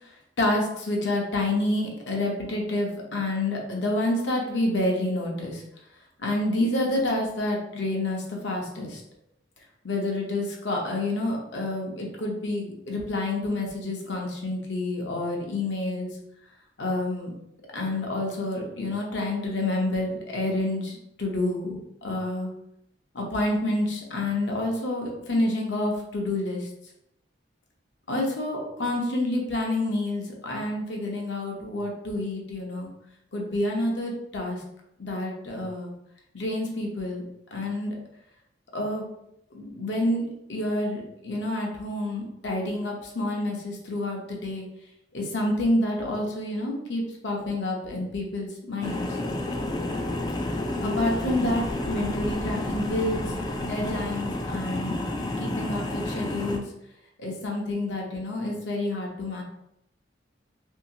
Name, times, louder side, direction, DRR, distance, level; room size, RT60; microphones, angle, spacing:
voice 1, 0.4-5.6 6.2-9.0 9.8-16.1 16.8-17.3 17.7-22.5 23.1-26.7 28.1-32.9 33.3-34.6 35.0-35.9 36.3-37.2 37.5-38.0 38.7-39.1 39.5-44.7 45.1-49.1 50.8-53.3 53.6-55.0 55.4-56.7 57.2-59.4, left 1 dB, 70° left, -1 dB, 0.8 m, -28 dB
sound 1, 48.8-56.6, left 1 dB, 20° left, 0.3 m, -30 dB
2.8 x 2.7 x 2.7 m, 0.80 s
head